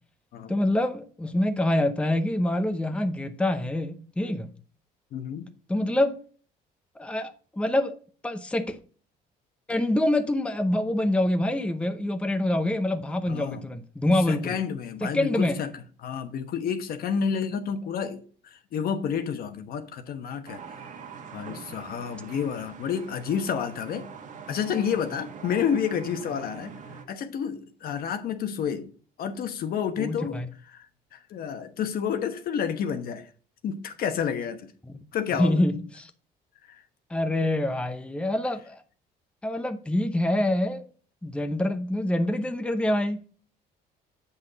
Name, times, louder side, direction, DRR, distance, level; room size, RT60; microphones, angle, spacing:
voice 1, 0.5-4.5 5.7-6.2 7.0-8.0 8.2-8.8 9.7-14.6 15.0-15.6 30.0-30.5 34.9-35.0 35.4-36.1 37.1-38.8 39.4-40.9 41.2-43.3, left 1 dB, 5° left, 0.8 m, -26 dB
voice 2, 5.1-5.5 13.3-13.7 14.3-15.7 16.0-20.6 21.3-24.1 24.5-26.7 27.1-28.9 29.2-30.4 30.7-30.9 31.1-33.3 33.6-34.7 35.1-35.6 36.6-36.8, left 7 dB, 60° left, 1.1 m, -30 dB
sound 1, 20.5-27.1, right 6 dB, 50° right, 1.4 m, -43 dB
8.0 x 5.7 x 3.9 m
cardioid pair, 110°, 17 cm